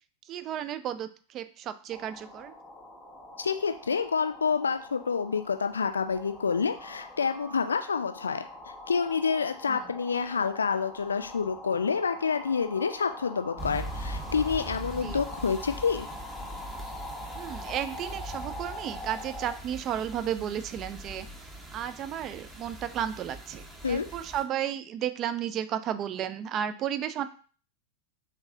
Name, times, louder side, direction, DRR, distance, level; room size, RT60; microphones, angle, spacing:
voice 1, 0.3-2.5 9.7-9.8 15.0-15.2 17.3-21.3 21.7-27.3, right 10 dB, 30° right, 12 dB, 0.3 m, -33 dB
sound 1, 1.9-19.5, left 1 dB, 10° left, 0.9 m, -44 dB
voice 2, 3.4-8.4 8.9-16.1 23.8-24.1, left 5 dB, 70° left, 7 dB, 0.4 m, -28 dB
sound 2, 13.6-24.4, right 1 dB, 10° right, 1.0 m, -41 dB
3.5 x 2.9 x 3.6 m, 0.41 s
figure-of-eight pair, 90°, 0 cm